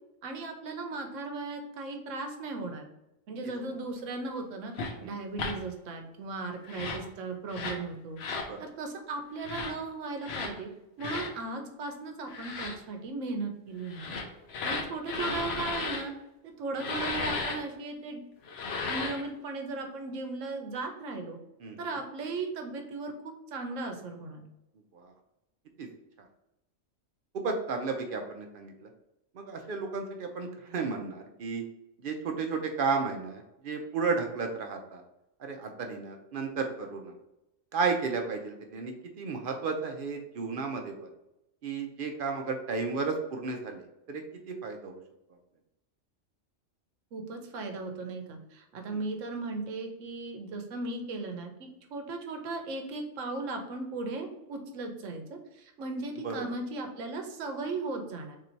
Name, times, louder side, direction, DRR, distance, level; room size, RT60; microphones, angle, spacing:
voice 1, 0.2-2.8 3.3-4.7 5.0-8.2 8.6-10.7 11.0-14.1 14.6-16.1 16.4-18.2 18.9-21.4 21.8-24.4 47.1-58.4, right 3 dB, 75° right, 4 dB, 1.1 m, -37 dB
sound 1, 4.7-4.9 5.3-5.5 6.6-7.1 7.5-7.8 8.2-8.5 9.4-9.7 10.2-10.5 11.0-11.3 12.3-12.7 13.9-16.0 16.8-17.6 18.4-19.2, left 4 dB, 60° left, 0.8 m, -34 dB
voice 2, 21.6-22.0 24.9-25.1 25.8-25.9 27.3-28.9 29.3-31.6 32.0-35.0 35.4-37.2 37.7-40.9 41.6-45.0 48.9-49.0 56.2-56.5, right 4 dB, 55° right, 4 dB, 0.6 m, -33 dB
3.6 x 2.6 x 4.3 m, 0.90 s
omnidirectional pair, 1.4 m